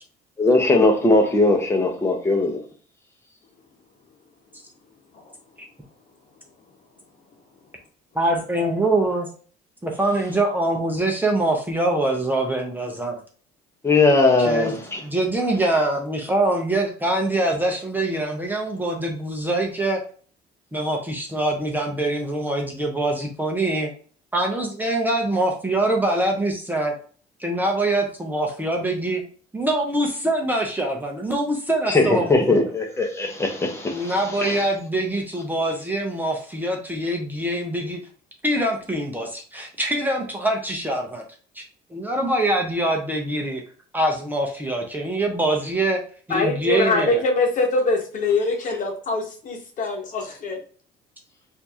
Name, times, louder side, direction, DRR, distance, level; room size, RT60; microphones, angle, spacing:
voice 1, 0.4-2.6 13.8-15.0 31.9-34.7, left 2 dB, 15° left, 1.1 m, -19 dB
voice 2, 8.1-9.3 9.8-13.1 14.4-14.7 15.0-20.0 20.7-23.9 24.3-26.9 27.4-29.2 29.5-32.6 33.9-38.0 38.4-41.2 41.5-41.6 41.9-43.6 43.9-46.0 46.3-47.2, right 1 dB, 10° right, 0.8 m, -24 dB
voice 3, 46.3-50.6, left 2 dB, 50° left, 1.1 m, -23 dB
4.3 x 2.7 x 2.9 m
cardioid pair, 110°, 17 cm